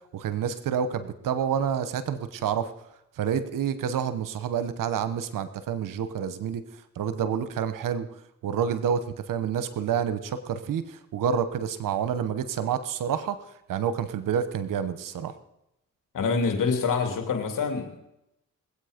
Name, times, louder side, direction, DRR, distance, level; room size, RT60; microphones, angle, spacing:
voice 1, 0.1-2.7 3.2-6.6 7.0-8.1 8.4-13.4 13.7-15.3, right 8 dB, 80° right, 12 dB, 1.1 m, -28 dB
voice 2, 16.1-18.0, left 5 dB, 75° left, 5 dB, 2.8 m, -26 dB
21.0 x 8.3 x 5.1 m, 0.86 s
supercardioid pair, 50°, 32 cm